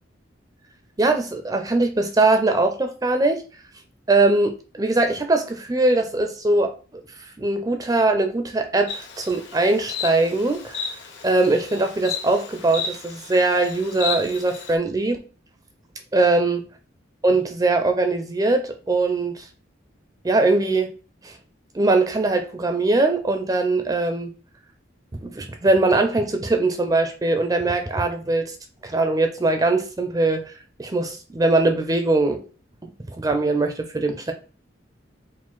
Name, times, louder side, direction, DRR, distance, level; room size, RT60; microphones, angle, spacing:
voice 1, 1.0-3.4 4.1-6.8 7.4-10.8 11.2-15.2 16.1-16.6 17.2-19.4 20.2-20.9 21.2-21.3 21.7-24.3 25.2-28.5 28.8-30.5 30.8-32.4 33.2-34.3, right 2 dB, 20° right, 0.4 m, -21 dB
Insect, 8.9-14.8, left 6 dB, 60° left, 0.9 m, -33 dB
4.9 x 2.1 x 3.6 m
head